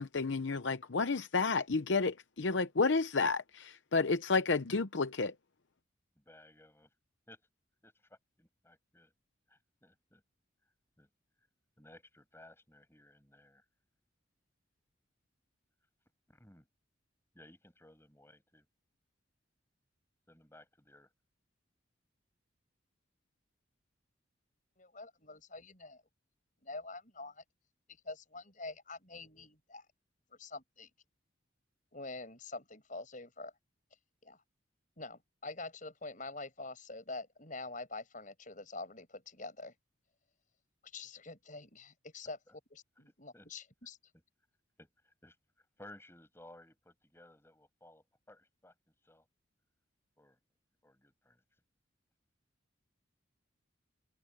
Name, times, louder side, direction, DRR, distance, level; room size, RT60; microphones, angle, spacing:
voice 1, 0.0-5.3, left 4 dB, 65° left, 0.7 m, -31 dB
voice 2, 6.2-6.9 7.3-7.4 7.8-9.1 9.5-10.2 11.0-11.1 11.8-13.6 16.3-16.7 17.3-18.7 20.3-21.1 42.5-42.6 43.3-43.5 44.8-45.4 45.8-48.7 49.0-49.3 50.2-50.4 50.8-51.4, left 1 dB, 10° left, 6.5 m, -58 dB
voice 3, 24.8-26.0 26.6-27.4 28.0-29.9 30.3-30.9 31.9-33.5 34.2-34.4 35.0-39.7 40.9-42.4 42.7-44.0, left 3 dB, 40° left, 7.4 m, -46 dB
head